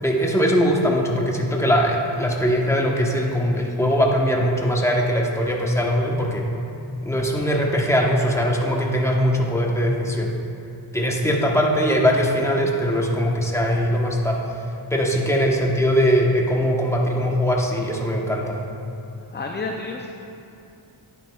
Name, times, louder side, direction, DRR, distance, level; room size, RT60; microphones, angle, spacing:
voice 1, 0.0-6.5 7.0-10.3 10.9-14.4 14.9-18.6, equal, 5° left, -1 dB, 1.0 m, -21 dB
voice 2, 19.3-20.1, left 3 dB, 25° left, 2 dB, 0.4 m, -30 dB
10.5 x 9.2 x 2.3 m, 2.7 s
wide cardioid pair, 85°, 48 cm